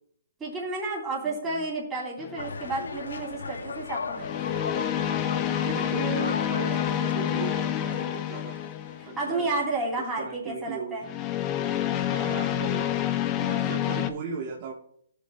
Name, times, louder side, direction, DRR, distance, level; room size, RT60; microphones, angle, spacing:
voice 1, 0.4-4.5 5.6-5.8 9.0-11.1 13.4-13.7, right 2 dB, 10° right, -5 dB, 3.0 m, -31 dB
voice 2, 1.2-1.7 5.6-8.6 9.1-9.5 10.2-11.0 12.1-13.2 13.4-14.7, right 6 dB, 35° right, -2 dB, 1.2 m, -37 dB
sound 1, 2.2-2.5 4.2-9.3 11.0-14.1, left 11 dB, 25° left, 0.5 m, -28 dB
sound 2, 2.4-9.2, left 4 dB, 85° left, 0.8 m, -37 dB
16.0 x 6.8 x 2.3 m, 0.69 s
hypercardioid pair, 155°, 0 cm